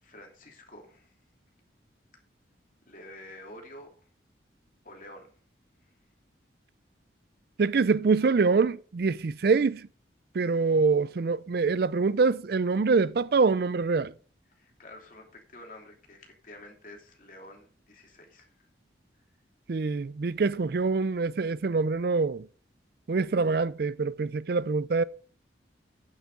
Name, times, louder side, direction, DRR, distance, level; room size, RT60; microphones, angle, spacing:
voice 1, 0.0-1.1 2.9-3.9 4.8-5.4 14.5-18.5, left 1 dB, 45° left, 2.9 m, -49 dB
voice 2, 7.6-9.9 10.3-14.1 19.7-22.5 23.1-25.0, right 4 dB, 55° right, 0.4 m, -25 dB
9.3 x 8.7 x 5.3 m
head